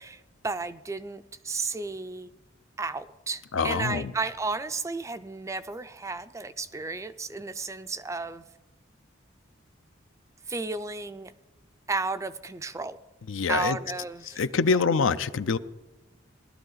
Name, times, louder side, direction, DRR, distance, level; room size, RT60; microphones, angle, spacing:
voice 1, 0.0-2.3 2.8-8.4 10.5-11.3 11.9-13.0 13.5-14.8, right 3 dB, 15° right, 12 dB, 0.4 m, -33 dB
voice 2, 3.5-4.1 13.3-13.8 14.4-15.6, left 5 dB, 70° left, 14 dB, 0.5 m, -25 dB
18.5 x 12.0 x 3.9 m, 1.1 s
head